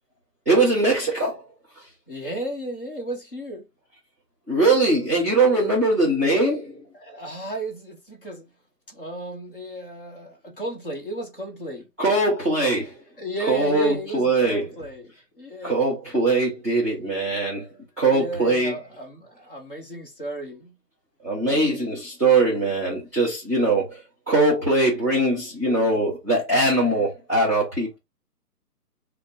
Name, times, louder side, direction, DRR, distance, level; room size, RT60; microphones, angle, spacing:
voice 1, 0.5-1.4 1.8-1.9 4.5-6.8 12.0-13.0 13.5-14.7 15.6-17.7 18.0-18.7 21.2-24.0 24.3-28.0, right 2 dB, 10° right, 0.8 m, -21 dB
voice 2, 2.1-3.6 6.9-8.5 8.9-11.9 13.2-15.8 18.1-20.7, right 1 dB, 35° left, 1.0 m, -34 dB
5.1 x 2.1 x 2.9 m
hypercardioid pair, 170°, 47 cm